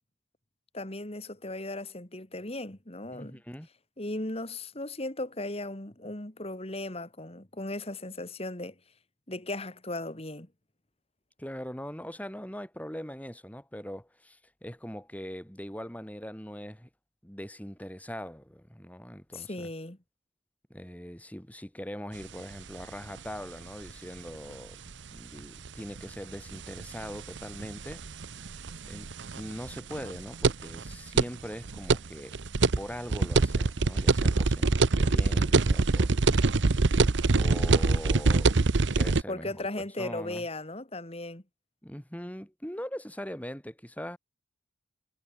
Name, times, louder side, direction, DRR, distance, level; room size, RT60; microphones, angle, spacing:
voice 1, 0.7-3.4 4.0-8.8 9.3-10.5 19.3-20.0 39.3-41.4, left 2 dB, 30° left, 2.5 m, -37 dB
voice 2, 3.1-3.7 11.4-16.9 17.2-19.7 20.7-24.8 25.1-28.0 28.9-32.4 32.8-36.2 37.3-38.6 38.9-40.5 41.8-44.2, equal, 10° left, 6.3 m, -41 dB
sound 1, 22.2-22.3 22.5-22.6 22.8-22.9 24.3-24.4 24.9-25.0 25.4-25.5 25.7-25.8 26.0-26.1 26.5-32.1 32.3-39.2, right 3 dB, 65° right, 0.8 m, -24 dB
head